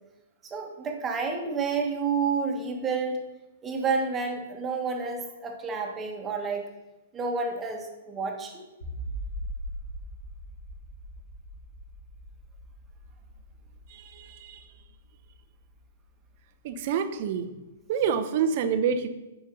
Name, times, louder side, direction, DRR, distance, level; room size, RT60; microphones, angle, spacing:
voice 1, 0.4-3.2 3.6-6.7 7.1-8.7, right 4 dB, 20° right, 2 dB, 1.4 m, -30 dB
sound 1, 8.8-16.0, right 1 dB, 80° left, 2.8 m, -41 dB
voice 2, 13.9-14.6 16.6-17.5 17.9-19.1, right 7 dB, 50° right, 9 dB, 0.7 m, -27 dB
9.0 x 5.1 x 4.0 m, 1.0 s
hypercardioid pair, 115°, 0 cm